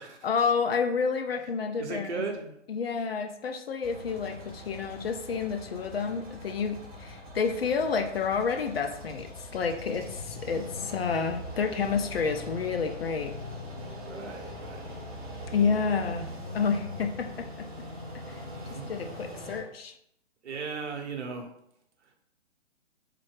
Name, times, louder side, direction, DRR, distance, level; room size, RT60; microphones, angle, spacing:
voice 1, 0.2-2.2 2.7-13.3 15.5-16.3 16.5-17.3 17.6-17.7 18.3-18.4 18.9-19.9, left 5 dB, 55° left, 6 dB, 0.4 m, -29 dB
voice 2, 1.8-2.6 4.0-4.5 14.0-14.9 18.7-18.9 20.4-21.5 22.0-22.2, right 4 dB, 65° right, 3 dB, 0.8 m, -38 dB
sound 1, 3.8-19.6, left 1 dB, 10° right, 0.5 m, -41 dB
3.4 x 2.2 x 3.2 m, 0.72 s
figure-of-eight pair, 135°, 37 cm